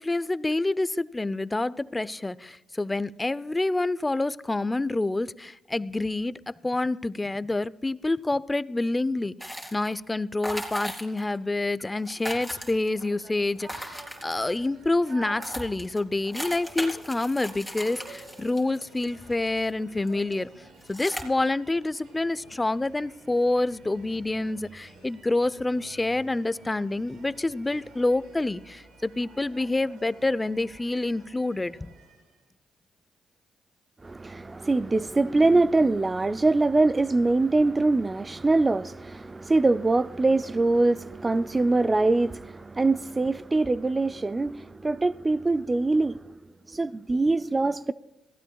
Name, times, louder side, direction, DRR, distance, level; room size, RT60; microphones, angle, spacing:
voice 1, 0.0-20.5 20.9-31.9, left 2 dB, 20° left, 0.6 m, -27 dB
sound 1, 9.4-10.0 10.4-11.4 11.6-11.7 11.9-13.1 13.6-14.7 15.1-15.2 15.4-19.7 20.1-20.3 20.8-21.2, equal, 5° right, 4.0 m, -37 dB
sound 2, 12.6-32.4, right 2 dB, 85° right, 5.8 m, -50 dB
voice 2, 34.0-46.2 46.7-47.9, right 2 dB, 25° right, 0.4 m, -23 dB
27.0 x 16.5 x 2.3 m
supercardioid pair, 65°, 0 cm